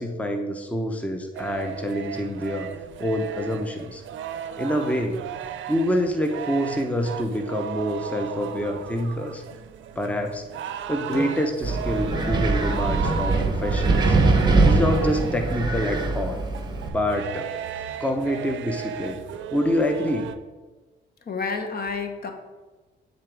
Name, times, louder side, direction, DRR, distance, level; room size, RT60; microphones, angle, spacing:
voice 1, 0.0-2.7 3.0-4.0 4.6-5.3 5.7-9.4 10.0-10.4 10.9-14.2 14.6-16.4 16.9-17.5 18.0-19.2 19.5-20.3, equal, 5° left, 4 dB, 0.8 m, -26 dB
sound 1, 1.3-20.4, right 9 dB, 70° right, 0.5 m, -35 dB
sound 2, 11.1-11.3 12.1-12.2 13.0-13.3 14.0-14.2 15.0-15.2, equal, 85° left, 1.9 m, -31 dB
Wind, 11.6-16.9, right 3 dB, 20° right, 0.9 m, -22 dB
voice 2, 21.3-22.3, left 4 dB, 50° left, 5 dB, 1.0 m, -29 dB
8.5 x 3.9 x 4.7 m, 1.3 s
cardioid pair, 90°, 20 cm